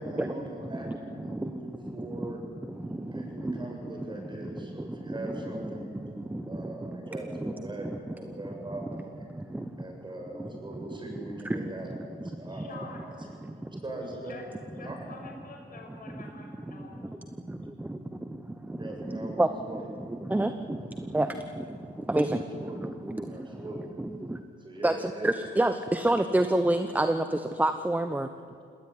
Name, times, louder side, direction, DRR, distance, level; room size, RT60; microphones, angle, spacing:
voice 1, 0.0-2.4 3.1-5.9 6.5-9.2 9.8-11.9 12.2-13.3 13.8-14.4 14.8-15.0 18.8-19.8 22.3-22.8 23.3-23.9 24.6-25.5, right 1 dB, 25° right, 1 dB, 7.2 m, -41 dB
voice 2, 12.5-13.1 13.6-13.7 14.2-14.4 14.8-17.0, left 4 dB, 45° left, 2 dB, 6.0 m, -47 dB
voice 3, 20.3-20.8 21.1-21.3 22.1-22.4 22.8-23.2 24.0-24.1 24.8-27.2 27.6-28.3, right 1 dB, 10° right, 9 dB, 1.0 m, -26 dB
19.0 x 19.0 x 9.6 m, 2.3 s
cardioid pair, 90°, 20 cm